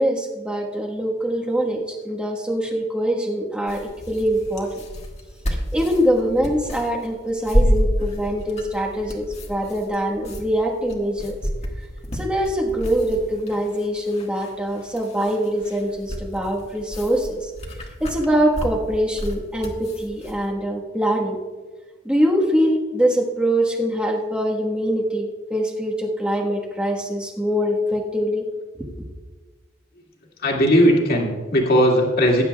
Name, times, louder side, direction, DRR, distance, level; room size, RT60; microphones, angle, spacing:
voice 1, 0.0-4.8 5.7-11.4 12.1-17.5 18.0-21.4 22.0-28.5 28.8-28.9, equal, 5° right, -1 dB, 1.3 m, -23 dB
sound 1, 3.7-20.4, equal, 35° left, 1.6 m, -29 dB
voice 2, 30.4-32.4, equal, 50° left, -1 dB, 2.2 m, -17 dB
19.0 x 9.8 x 2.3 m, 1.4 s
head